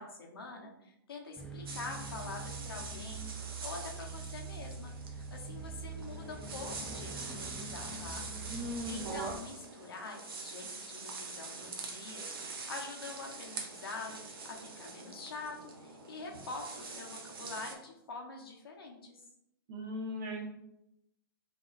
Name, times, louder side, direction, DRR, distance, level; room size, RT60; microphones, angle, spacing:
voice 1, 0.0-8.3 8.9-19.2, left 3 dB, 80° left, 1 dB, 1.0 m, -45 dB
sound 1, 1.4-9.4, right 3 dB, 10° left, 0.4 m, -44 dB
sound 2, 1.7-17.7, right 4 dB, 80° right, 0.9 m, -45 dB
voice 2, 8.5-9.3 19.7-20.4, right 1 dB, 50° right, -2 dB, 1.5 m, -38 dB
5.1 x 2.8 x 2.5 m, 0.83 s
hypercardioid pair, 125°, 12 cm